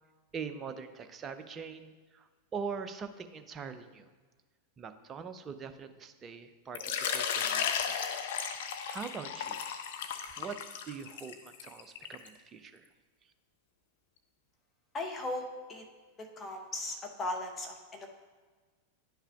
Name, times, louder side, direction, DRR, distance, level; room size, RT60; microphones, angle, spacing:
voice 1, 0.3-4.1 4.8-8.0 8.9-9.6 10.4-10.6 10.9-12.8, right 6 dB, 25° right, 9 dB, 0.4 m, -42 dB
Water / Liquid, 6.7-12.3, left 7 dB, 55° left, 0.5 m, -35 dB
voice 2, 14.9-15.8 16.2-18.1, left 2 dB, 20° left, 2 dB, 0.9 m, -37 dB
10.5 x 5.5 x 2.4 m, 1.4 s
figure-of-eight pair, 90°, 0 cm